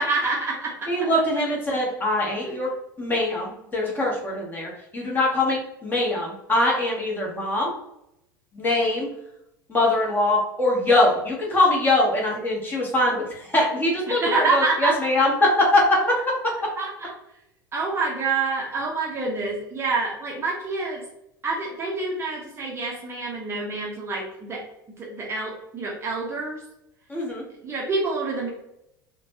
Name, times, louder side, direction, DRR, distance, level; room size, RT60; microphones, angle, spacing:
voice 1, 0.0-0.9 2.4-2.5 14.1-15.0 16.8-17.1 17.7-21.0 21.4-24.6 25.0-26.6 27.6-28.5, right 3 dB, 20° right, -3 dB, 0.7 m, -27 dB
voice 2, 0.9-2.7 3.0-7.7 8.5-9.1 9.7-16.1 27.1-27.4, left 1 dB, 15° left, -3 dB, 1.0 m, -22 dB
3.1 x 2.2 x 2.7 m, 0.82 s
figure-of-eight pair, 75°, 11 cm